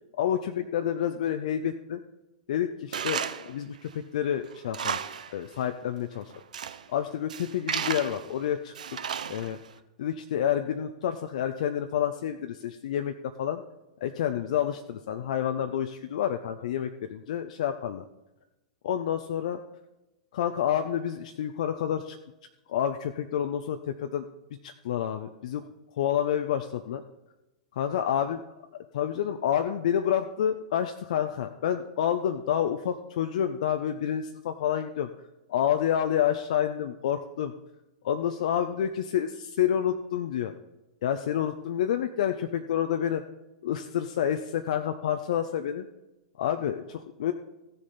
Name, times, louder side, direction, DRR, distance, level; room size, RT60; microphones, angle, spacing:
voice 1, 0.2-2.0 2.5-5.0 5.3-6.3 6.9-8.7 9.3-9.6 10.0-13.6 14.0-18.0 18.8-19.6 20.3-22.2 22.7-24.3 24.6-25.7 26.0-27.0 27.7-28.4 28.9-35.1 35.5-37.5 38.0-40.5 41.0-43.2 43.6-45.9 46.4-47.3, left 9 dB, 60° left, 7 dB, 0.5 m, -29 dB
Tools, 2.9-3.5 3.9-4.0 4.5-5.3 5.6-5.7 6.3-6.8 7.3-8.3 8.7-9.7, right 7 dB, 70° right, 0.6 m, -33 dB
15.5 x 6.6 x 4.1 m, 0.99 s
figure-of-eight pair, 100°, 4 cm